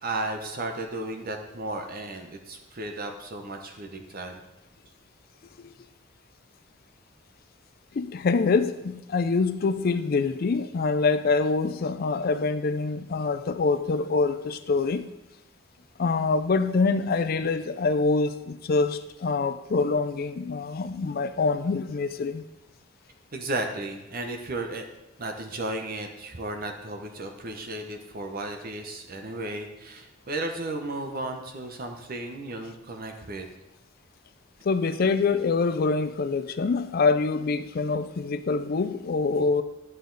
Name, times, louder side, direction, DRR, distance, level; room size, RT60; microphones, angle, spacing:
voice 1, 0.0-4.4 23.3-24.9 25.2-33.5, right 2 dB, 50° right, 4 dB, 0.9 m, -34 dB
voice 2, 7.9-15.1 16.0-22.4 34.6-39.6, left 4 dB, 50° left, 10 dB, 0.4 m, -25 dB
11.5 x 6.6 x 3.9 m, 1.0 s
head